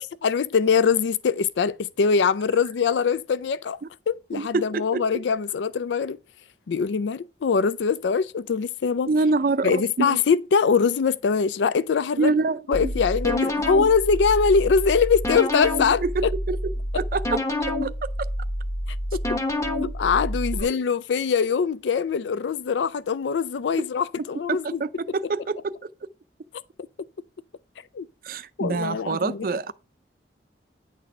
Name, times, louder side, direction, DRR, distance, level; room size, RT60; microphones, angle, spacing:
voice 1, 0.2-3.8 4.1-6.2 6.7-9.1 9.6-12.3 12.7-16.3 19.1-19.2 19.8-24.8 27.9-28.1 28.6-29.7, left 5 dB, 85° left, 0.4 m, -23 dB
voice 2, 4.3-5.0 9.1-10.2 12.2-12.9 16.1-16.6 16.9-17.4 17.8-17.9 24.5-25.9 28.2-29.7, right 3 dB, 50° right, 0.4 m, -26 dB
sound 1, 12.7-20.6, left 1 dB, 15° left, 1.1 m, -28 dB
9.4 x 4.1 x 5.5 m
head